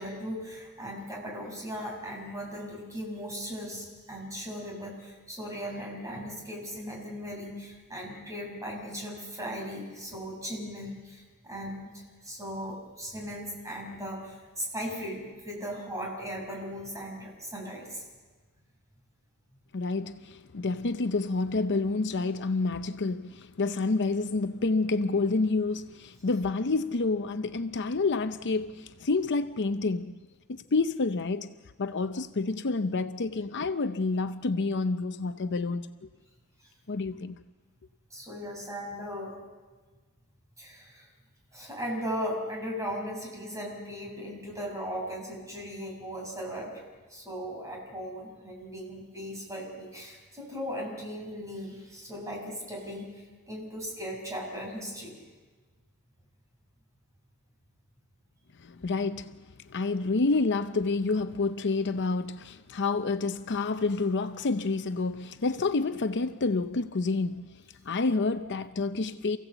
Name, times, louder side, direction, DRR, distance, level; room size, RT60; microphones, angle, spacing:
voice 1, 0.0-18.0 38.1-39.3 40.6-41.1 41.5-46.8 47.1-55.2, equal, 15° right, 6.1 m, -38 dB
voice 2, 19.7-30.2 30.5-35.9 36.9-37.4 58.6-69.4, left 3 dB, 55° left, 0.7 m, -29 dB
28.5 x 16.0 x 8.1 m
head